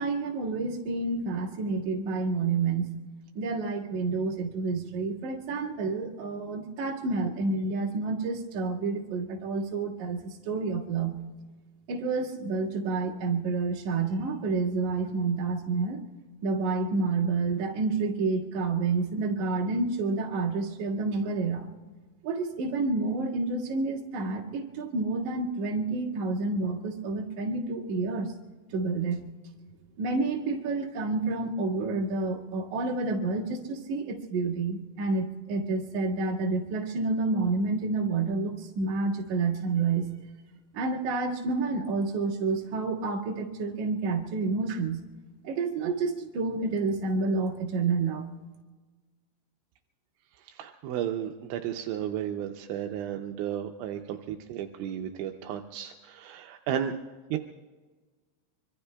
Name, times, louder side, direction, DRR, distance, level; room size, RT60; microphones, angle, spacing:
voice 1, 0.0-2.9 3.4-11.2 11.9-16.0 16.4-21.7 22.2-28.3 28.7-29.2 30.0-40.1 40.7-45.0 45.4-48.3, right 3 dB, 55° right, -3 dB, 2.4 m, -29 dB
voice 2, 50.4-57.0 57.3-57.4, right 10 dB, 80° right, 5 dB, 2.9 m, -33 dB
25.0 x 24.5 x 2.3 m, 1.3 s
omnidirectional pair, 5.6 m